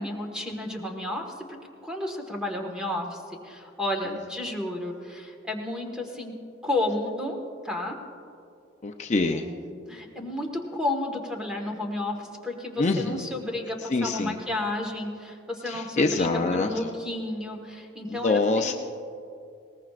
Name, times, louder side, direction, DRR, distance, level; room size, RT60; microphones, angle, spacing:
voice 1, 0.0-1.3 1.8-6.4 6.6-7.4 7.6-8.0 9.3-9.6 9.9-18.7, left 1 dB, 5° right, 1 dB, 1.5 m, -32 dB
voice 2, 8.8-9.4 12.8-13.3 13.9-14.4 15.7-16.9 18.1-18.7, left 3 dB, 35° left, 3 dB, 0.5 m, -25 dB
21.0 x 19.0 x 2.5 m, 2.5 s
head